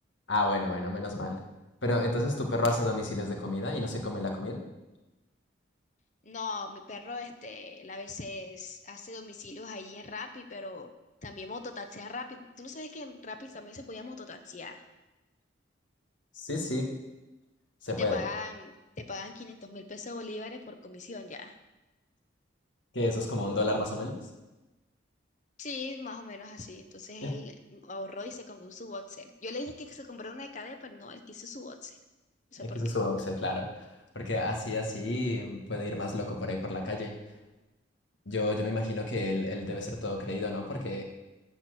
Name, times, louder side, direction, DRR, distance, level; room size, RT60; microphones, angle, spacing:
voice 1, 0.3-1.4 1.8-4.6 16.3-16.9 17.8-18.2 22.9-24.2 27.2-27.3 32.7-33.9 34.1-37.1 38.3-41.0, left 2 dB, 70° left, 2 dB, 1.8 m, -31 dB
voice 2, 6.2-10.9 11.2-14.8 18.0-21.6 25.6-32.0 32.5-32.8, left 3 dB, 40° left, 7 dB, 0.9 m, -41 dB
13.0 x 4.5 x 7.9 m, 1.0 s
head